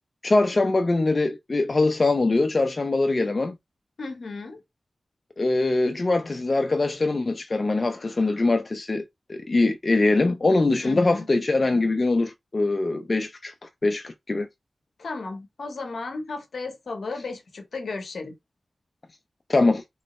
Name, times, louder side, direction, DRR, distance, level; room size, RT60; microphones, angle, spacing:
voice 1, 0.2-3.5 5.4-9.0 9.3-13.5 13.8-14.5 19.5-19.8, left 2 dB, 50° left, 0.4 m, -22 dB
voice 2, 4.0-4.6 10.8-11.3 15.0-18.4, left 3 dB, 80° left, 0.7 m, -34 dB
3.0 x 2.0 x 2.9 m
cardioid pair, 45°, 0 cm